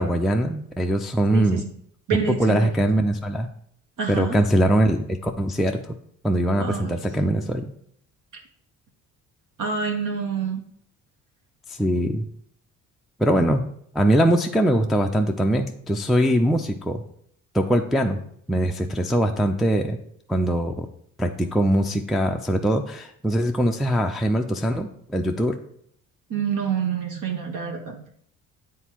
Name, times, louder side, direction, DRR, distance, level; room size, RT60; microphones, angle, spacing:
voice 1, 0.0-1.6 2.3-3.5 4.1-5.8 6.2-7.7 11.7-12.3 13.2-13.6 13.9-17.0 17.5-18.2 18.5-20.0 20.3-20.9 21.2-25.6, right 1 dB, ahead, 2 dB, 0.4 m, -22 dB
voice 2, 2.1-2.7 4.0-4.4 6.6-7.0 9.6-10.6 26.3-28.0, right 7 dB, 55° right, 0 dB, 1.0 m, -27 dB
8.9 x 3.7 x 2.9 m, 0.66 s
hypercardioid pair, 55°, 38 cm